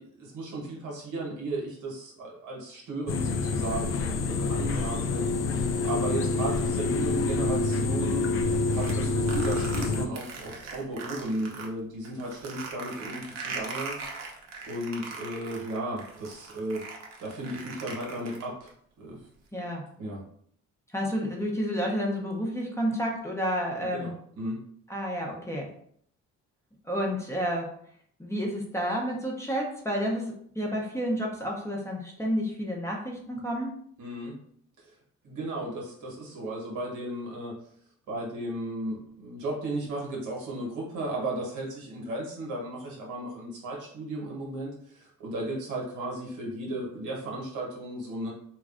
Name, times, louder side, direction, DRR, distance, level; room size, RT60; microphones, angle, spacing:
voice 1, 0.0-8.3 8.7-14.0 14.6-16.9 17.2-18.7 19.0-19.3 20.0-20.2 23.8-24.6 34.0-34.4 34.8-34.9 35.2-37.5 38.1-48.3, right 1 dB, 90° right, -2 dB, 1.1 m, -35 dB
sound 1, 3.1-10.1, left 3 dB, 45° left, 0.4 m, -27 dB
sound 2, 8.5-11.7 12.0-18.7, right 4 dB, 60° right, 0.7 m, -40 dB
voice 2, 19.5-19.8 20.9-24.1 24.9-25.7 26.8-27.7 28.2-33.7, equal, 10° left, -1 dB, 0.7 m, -30 dB
3.1 x 2.3 x 2.4 m, 0.64 s
cardioid pair, 90°, 30 cm